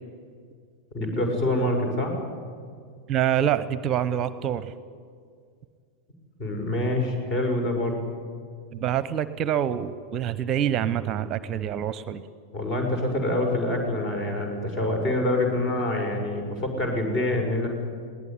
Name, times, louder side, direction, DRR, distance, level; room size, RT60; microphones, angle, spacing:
voice 1, 0.9-2.2 6.4-8.0 12.5-17.7, left 1 dB, 40° left, 3 dB, 5.7 m, -26 dB
voice 2, 3.1-4.7 8.7-12.2, right 10 dB, 30° right, 16 dB, 0.8 m, -26 dB
20.5 x 18.0 x 9.9 m, 2.1 s
figure-of-eight pair, 90°, 0 cm